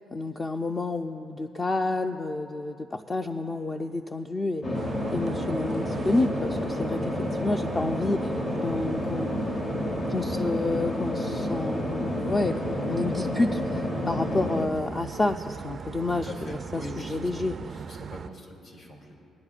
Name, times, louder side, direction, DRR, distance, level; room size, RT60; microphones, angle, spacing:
voice 1, 0.1-4.6 5.1-9.3 10.1-17.6, left 2 dB, 30° left, 4 dB, 0.4 m, -29 dB
sound 1, 4.6-14.7, left 1 dB, 45° left, 1.4 m, -30 dB
sound 2, 4.7-18.3, right 6 dB, 50° right, 0.3 m, -39 dB
voice 2, 16.1-17.4 17.7-19.1, left 1 dB, 75° left, -3 dB, 2.6 m, -42 dB
24.5 x 10.5 x 2.4 m, 2.7 s
cardioid pair, 90°, 0 cm